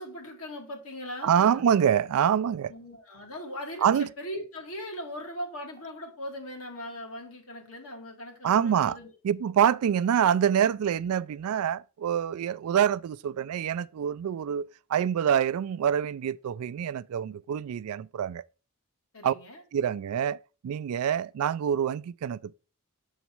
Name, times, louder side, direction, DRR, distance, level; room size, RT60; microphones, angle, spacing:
voice 1, 0.0-1.7 2.7-9.1 19.1-19.6, equal, 75° left, 2.0 m, -39 dB
voice 2, 1.2-2.7 3.8-4.1 8.4-9.0 9.2-18.4 19.2-19.3 19.7-22.5, right 8 dB, 85° right, 0.3 m, -26 dB
7.2 x 4.0 x 4.5 m
head